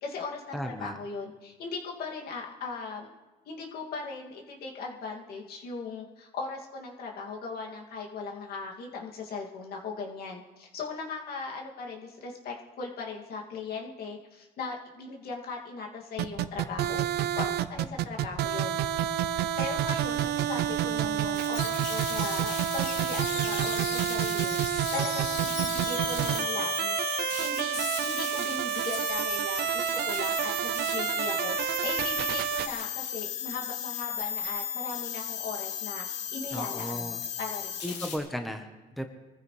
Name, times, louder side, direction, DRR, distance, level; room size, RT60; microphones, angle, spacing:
voice 1, 0.0-3.1 3.5-18.8 19.6-27.1 27.4-37.8, left 4 dB, 65° left, -1 dB, 2.6 m, -38 dB
voice 2, 0.5-1.0 36.5-37.2 37.8-38.7 39.0-39.1, equal, ahead, 5 dB, 1.2 m, -35 dB
sound 1, 16.2-32.7, right 11 dB, 75° right, 0.7 m, -29 dB
sound 2, 21.3-38.2, left 7 dB, 90° left, 3.0 m, -35 dB
24.0 x 14.5 x 3.4 m, 1.2 s
cardioid pair, 110°, 17 cm